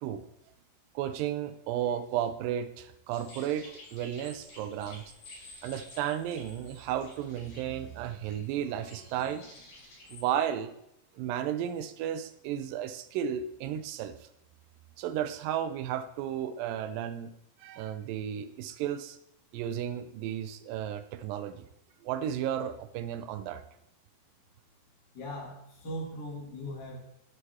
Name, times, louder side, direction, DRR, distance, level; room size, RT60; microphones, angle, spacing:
voice 1, 1.0-5.0 5.6-9.5 10.1-10.7 11.2-14.2 15.0-17.3 17.6-19.2 19.5-21.7 22.0-23.6, right 10 dB, 80° right, 11 dB, 2.1 m, -33 dB
sound 1, 3.1-10.4, left 2 dB, 75° left, 5.5 m, -52 dB
voice 2, 25.1-27.1, equal, 30° left, -5 dB, 2.7 m, -39 dB
11.0 x 7.9 x 3.6 m, 0.79 s
omnidirectional pair, 4.3 m